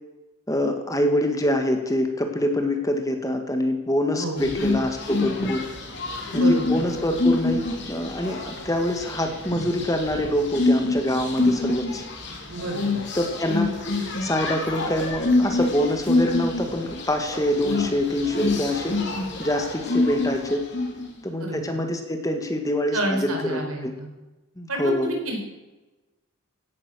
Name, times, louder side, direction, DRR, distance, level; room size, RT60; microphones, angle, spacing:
voice 1, 0.5-5.7 6.3-12.0 13.2-19.0 19.4-20.6 21.2-23.9 24.6-25.1, left 1 dB, 15° left, 5 dB, 1.8 m, -25 dB
voice 2, 4.1-4.5 6.3-6.8 12.5-13.0 21.4-21.8 22.9-24.1 24.7-25.4, right 2 dB, 85° right, 2 dB, 4.7 m, -29 dB
sound 1, 4.4-21.1, left 2 dB, 55° left, 3.4 m, -26 dB
17.0 x 12.0 x 6.4 m, 1.1 s
head